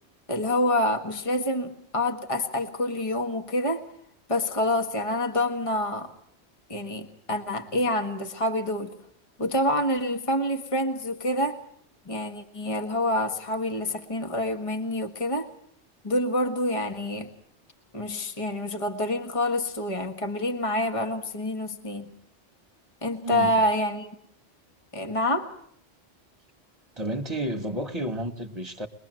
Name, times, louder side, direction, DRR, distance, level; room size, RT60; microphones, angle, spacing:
voice 1, 0.3-3.8 4.3-6.1 6.7-8.9 9.4-11.6 12.0-15.5 16.0-17.3 17.9-22.1 23.0-24.1 24.9-25.5, left 1 dB, 30° left, 1.8 m, -27 dB
voice 2, 23.2-23.6 27.0-28.9, right 1 dB, 25° right, 1.5 m, -31 dB
23.0 x 22.0 x 7.7 m
omnidirectional pair, 1.2 m